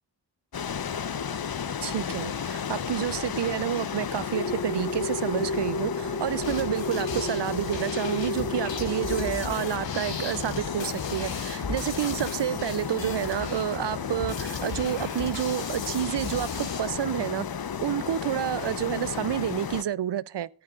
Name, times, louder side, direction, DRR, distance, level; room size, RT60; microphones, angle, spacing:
sound 1, 0.5-19.8, left 7 dB, 55° left, 0.9 m, -34 dB
voice 1, 1.8-17.5 17.8-20.5, right 11 dB, 70° right, 0.5 m, -29 dB
sound 2, 4.3-9.3, left 2 dB, 30° left, 1.7 m, -32 dB
sound 3, 6.4-16.8, left 4 dB, 90° left, 2.5 m, -37 dB
17.0 x 12.0 x 2.4 m
cardioid pair, 50°, 43 cm